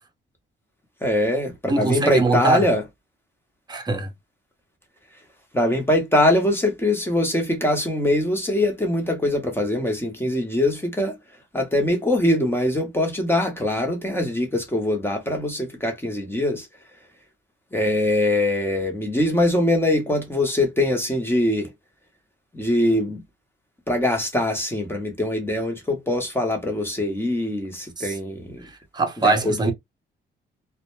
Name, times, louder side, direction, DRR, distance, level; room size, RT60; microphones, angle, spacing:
voice 1, 1.0-2.8 5.5-11.2 11.5-16.7 17.7-21.7 22.5-23.2 23.9-28.6 29.2-29.7, left 1 dB, 10° left, 0.9 m, -22 dB
voice 2, 1.7-2.7 3.7-4.1 28.0-28.1 28.6-29.7, right 3 dB, 20° right, 0.8 m, -22 dB
2.2 x 2.1 x 3.0 m
cardioid pair, 90°, 20 cm